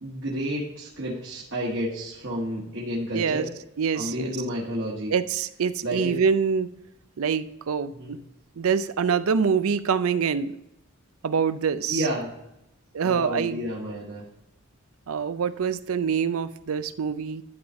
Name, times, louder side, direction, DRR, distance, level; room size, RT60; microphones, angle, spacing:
voice 1, 0.0-3.5 3.9-5.1 5.8-6.1 7.9-8.2 11.9-12.3 13.0-14.2, equal, 55° right, -5 dB, 1.7 m, -30 dB
voice 2, 3.1-3.5 3.8-4.4 5.1-6.7 7.2-8.2 8.6-10.6 11.2-12.0 12.9-13.6 15.1-17.4, right 6 dB, 80° right, 14 dB, 0.5 m, -25 dB
12.0 x 4.0 x 4.5 m, 0.86 s
head